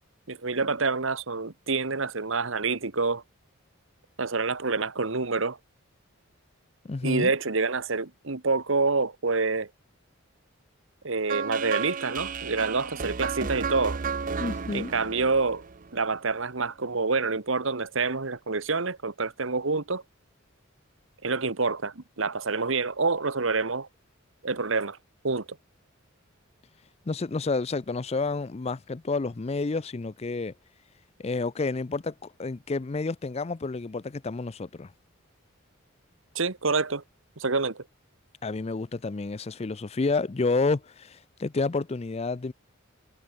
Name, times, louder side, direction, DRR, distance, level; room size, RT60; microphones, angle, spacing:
voice 1, 0.3-3.2 4.2-5.6 7.0-9.7 11.0-14.0 14.7-15.6 15.9-20.0 21.2-23.9 24.4-25.0 25.2-25.4 36.3-37.0 37.4-37.8, right 4 dB, 70° right, 1.4 m, -27 dB
voice 2, 6.8-7.3 13.4-13.5 14.4-14.9 27.1-30.5 31.2-32.1 32.4-34.9 38.4-42.5, left 3 dB, 30° left, 0.5 m, -29 dB
sound 1, 11.3-16.3, right 5 dB, 40° right, 0.6 m, -33 dB
head